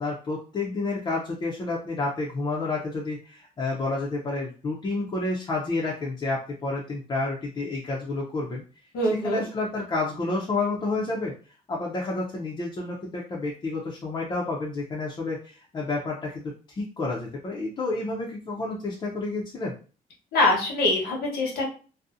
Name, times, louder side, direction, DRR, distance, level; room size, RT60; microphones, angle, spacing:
voice 1, 0.0-8.6 9.2-11.3 11.7-19.7, left 3 dB, 25° left, -3 dB, 0.4 m, -30 dB
voice 2, 8.9-9.4 20.3-21.7, left 1 dB, 85° left, -1 dB, 1.0 m, -23 dB
2.6 x 2.0 x 2.4 m, 0.38 s
cardioid pair, 155°, 16 cm